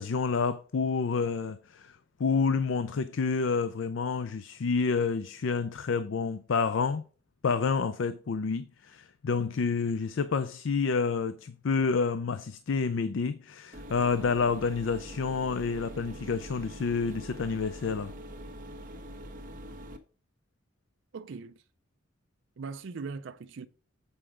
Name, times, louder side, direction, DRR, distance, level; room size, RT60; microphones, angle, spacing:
voice 1, 0.0-7.0 7.4-18.1, left 5 dB, 70° left, 0.5 m, -29 dB
sound 1, 13.7-20.0, equal, 40° right, 1.2 m, -44 dB
voice 2, 21.1-21.6 22.6-23.7, right 4 dB, 65° right, 0.4 m, -40 dB
7.9 x 4.9 x 4.9 m
head